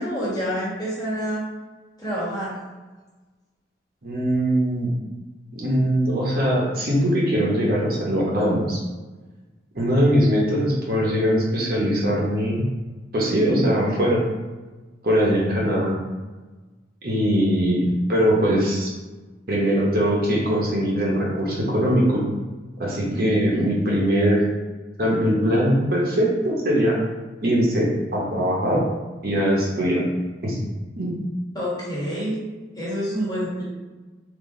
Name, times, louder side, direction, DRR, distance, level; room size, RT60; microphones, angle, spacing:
voice 1, 0.0-1.4 2.0-2.6 23.1-23.7 31.5-32.4 32.8-33.6, equal, 20° left, -7 dB, 1.4 m, -27 dB
voice 2, 4.0-4.9 5.5-8.8 9.7-12.6 13.1-14.2 15.0-16.0 17.0-17.8 18.1-18.9 19.5-22.2 22.8-24.4 25.0-27.0 27.4-28.8 29.2-30.0 30.4-30.6 31.0-31.2, equal, 55° right, -3 dB, 0.9 m, -21 dB
4.0 x 2.7 x 3.8 m, 1.2 s
head